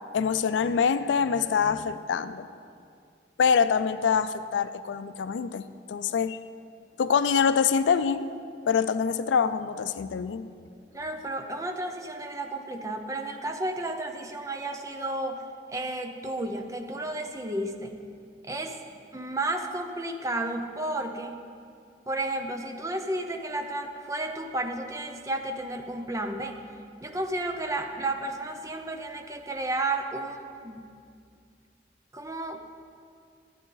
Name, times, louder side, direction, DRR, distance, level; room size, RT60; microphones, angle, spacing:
voice 1, 0.1-2.5 3.4-6.4 7.0-8.3 8.7-10.5, left 6 dB, 85° left, 12 dB, 0.4 m, -25 dB
voice 2, 10.9-15.4 15.7-18.0 18.4-18.8 19.1-21.4 22.1-26.6 27.0-30.9 32.1-32.6, right 2 dB, 20° right, 4 dB, 0.6 m, -32 dB
12.5 x 8.9 x 3.9 m, 2.3 s
head